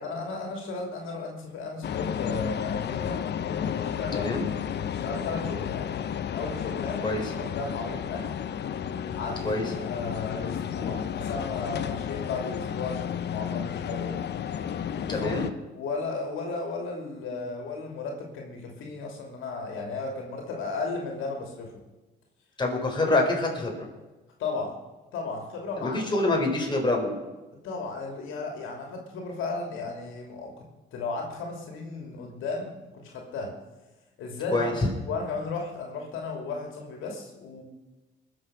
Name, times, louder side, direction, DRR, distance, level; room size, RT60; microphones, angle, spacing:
voice 1, 0.0-4.3 4.7-5.9 6.3-8.3 9.1-14.1 15.1-15.3 15.7-21.7 24.4-24.7 25.1-26.0 27.6-30.7 30.9-33.5 34.2-34.7 35.1-37.6, left 3 dB, 85° left, 1 dB, 2.9 m, -35 dB
sound 1, 1.8-15.5, left 8 dB, 60° left, 0.9 m, -32 dB
voice 2, 4.1-4.5 7.0-7.2 9.4-9.6 15.1-15.5 22.6-23.9 25.8-27.2 34.5-34.7, left 2 dB, 25° left, 0 dB, 4.4 m, -26 dB
21.5 x 7.3 x 6.2 m, 1.1 s
cardioid pair, 90°, 20 cm